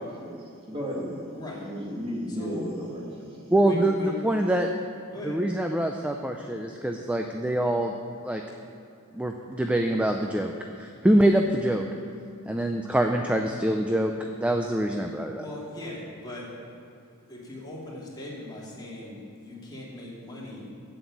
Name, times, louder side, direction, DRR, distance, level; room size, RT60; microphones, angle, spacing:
voice 1, 0.0-3.3, equal, 25° right, -4 dB, 2.1 m, -34 dB
voice 2, 1.3-1.6 2.3-2.9 3.6-4.1 5.1-5.4 15.3-16.5 17.3-20.7, left 1 dB, 20° left, -5 dB, 2.5 m, -40 dB
voice 3, 3.5-4.7 5.2-7.9 8.2-8.4 9.1-10.5 10.8-11.8 12.5-14.1 14.4-15.4, right 1 dB, 5° right, 3 dB, 0.4 m, -24 dB
8.1 x 7.7 x 8.5 m, 2.6 s
head